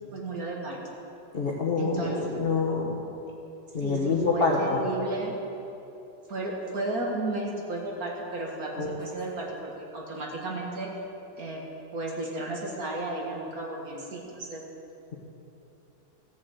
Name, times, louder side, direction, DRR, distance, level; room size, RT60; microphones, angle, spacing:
voice 1, 0.1-0.8 1.8-2.4 3.8-5.3 6.3-10.9 11.4-11.6 11.9-14.6, right 2 dB, 55° right, -2 dB, 2.2 m, -33 dB
voice 2, 1.3-3.0 3.7-4.8 8.7-9.0, left 4 dB, 35° left, -4 dB, 1.3 m, -26 dB
14.0 x 7.3 x 8.0 m, 2.9 s
omnidirectional pair, 2.0 m